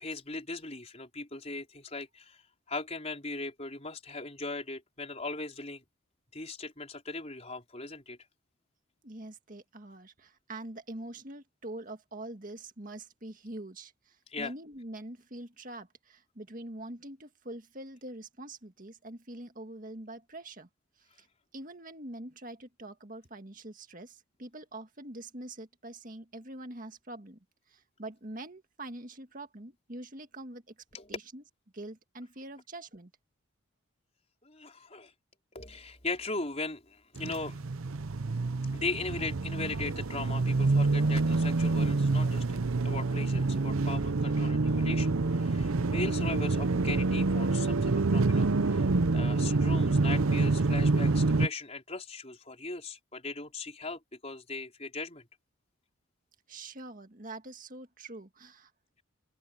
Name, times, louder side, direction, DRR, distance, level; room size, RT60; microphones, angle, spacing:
voice 1, 0.0-2.4 2.7-5.8 6.3-8.2 14.3-14.5 30.9-31.2 34.4-35.1 35.5-37.6 38.7-55.2, left 3 dB, 30° left, 4.7 m, -39 dB
voice 2, 9.0-20.7 21.0-21.3 21.5-27.4 27.7-30.7 31.1-31.4 31.7-33.1 56.5-58.7, right 1 dB, 40° right, 2.0 m, -44 dB
sound 1, 37.2-51.5, right 3 dB, 80° right, 0.7 m, -27 dB
open air
head